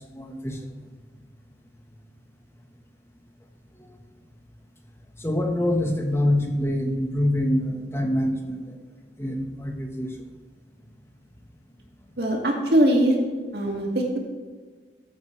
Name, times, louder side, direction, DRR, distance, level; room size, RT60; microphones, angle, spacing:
voice 1, 0.1-0.7 3.8-4.0 5.2-8.8 9.2-10.2 13.7-13.8, left 1 dB, 15° left, 3 dB, 1.3 m, -25 dB
voice 2, 12.2-13.2 13.5-14.2, right 1 dB, 60° right, 0 dB, 2.2 m, -21 dB
14.0 x 9.1 x 3.3 m, 1.5 s
head